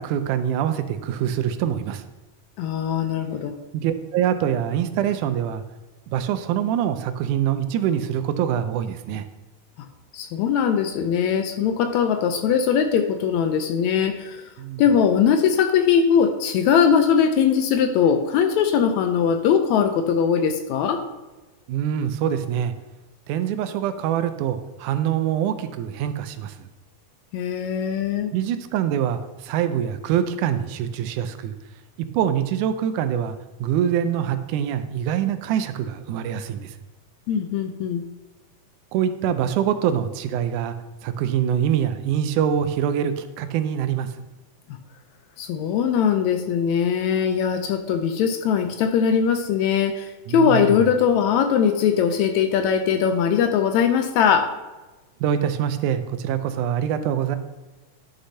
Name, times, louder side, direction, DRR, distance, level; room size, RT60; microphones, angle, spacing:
voice 1, 0.0-2.0 3.7-5.6 6.1-9.3 14.6-14.8 21.7-22.7 23.3-26.7 28.3-31.5 32.1-36.8 38.9-40.8 41.0-44.1 50.3-50.8 55.2-57.4, right 9 dB, 85° right, 10 dB, 2.0 m, -24 dB
voice 2, 2.6-3.5 10.1-14.4 14.8-21.0 27.3-28.3 37.3-38.0 44.7-44.8 45.4-54.5, left 7 dB, 80° left, 7 dB, 1.8 m, -20 dB
11.0 x 6.5 x 2.7 m, 1.1 s
omnidirectional pair, 3.5 m